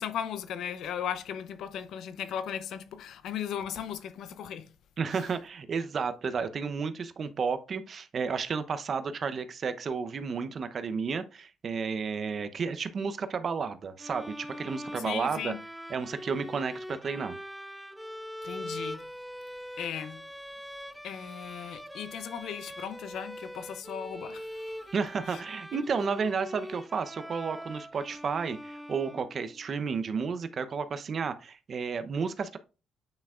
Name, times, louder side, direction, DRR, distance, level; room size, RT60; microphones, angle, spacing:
voice 1, 0.0-4.7 15.0-15.6 18.4-19.0 19.8-20.2 21.0-24.8 25.3-25.4, left 9 dB, 75° left, 0.7 m, -37 dB
voice 2, 5.0-15.5 15.9-17.4 24.9-32.6, right 5 dB, 50° right, 0.7 m, -32 dB
sound 1, 14.0-29.7, equal, ahead, 0.4 m, -42 dB
8.9 x 5.8 x 2.4 m
cardioid pair, 90°, 0 cm